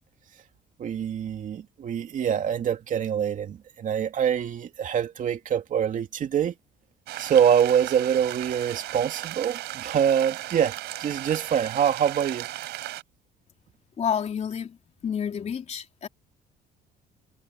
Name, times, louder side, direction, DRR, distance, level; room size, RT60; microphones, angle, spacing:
voice 1, 0.8-6.5 7.2-12.5, right 8 dB, 50° right, 2.7 m, -25 dB
sound 1, 7.1-13.0, right 16 dB, 80° right, 5.7 m, -36 dB
voice 2, 14.0-14.8 15.0-16.1, left 8 dB, 40° left, 3.0 m, -29 dB
cardioid pair, 110°, 17 cm